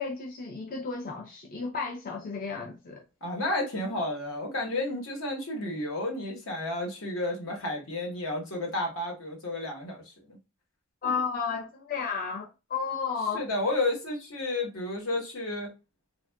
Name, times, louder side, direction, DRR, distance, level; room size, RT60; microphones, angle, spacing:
voice 1, 0.0-3.0 11.0-13.4, left 5 dB, 45° left, 0.4 m, -33 dB
voice 2, 3.2-10.4 13.3-15.7, left 2 dB, 75° left, 1.1 m, -31 dB
3.4 x 2.4 x 2.2 m
head